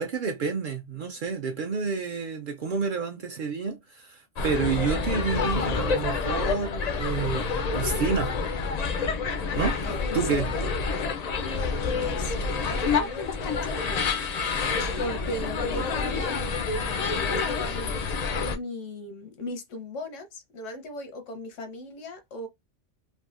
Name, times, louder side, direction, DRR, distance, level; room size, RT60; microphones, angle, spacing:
voice 1, 0.0-8.3 9.5-9.8 10.1-10.5, right 5 dB, 60° right, 0.5 m, -29 dB
sound 1, 4.4-18.6, left 4 dB, 70° left, 0.3 m, -28 dB
voice 2, 9.8-10.8 11.3-12.3 12.7-14.3 14.6-22.5, left 2 dB, 90° left, 1.1 m, -37 dB
3.4 x 2.2 x 2.4 m
omnidirectional pair, 1.3 m